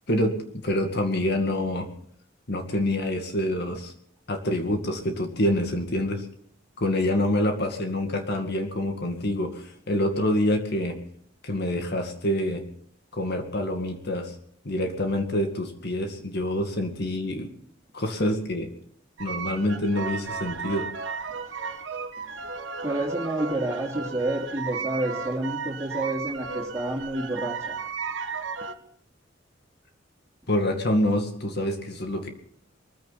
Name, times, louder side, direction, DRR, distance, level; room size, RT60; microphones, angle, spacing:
voice 1, 0.6-1.9 2.5-3.9 4.3-6.3 6.8-11.0 11.4-12.6 13.1-14.3 14.6-17.5 17.9-18.7 19.2-20.9 30.5-32.3, left 1 dB, 60° left, 5 dB, 2.2 m, -26 dB
sound 1, 19.2-28.7, right 5 dB, 70° right, 1.5 m, -34 dB
voice 2, 22.8-27.8, right 1 dB, 15° right, -3 dB, 3.1 m, -29 dB
22.5 x 15.0 x 4.2 m, 0.63 s
head